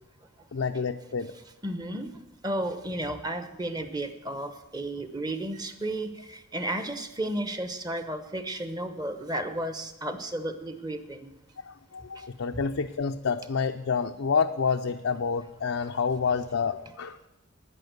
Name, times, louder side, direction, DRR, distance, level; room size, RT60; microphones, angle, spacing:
voice 1, 0.5-1.3 11.6-17.3, left 5 dB, 75° left, 5 dB, 0.5 m, -28 dB
voice 2, 1.6-2.1 2.4-11.3 12.2-12.3, right 1 dB, 20° right, 9 dB, 0.9 m, -33 dB
11.0 x 9.8 x 7.9 m, 0.99 s
head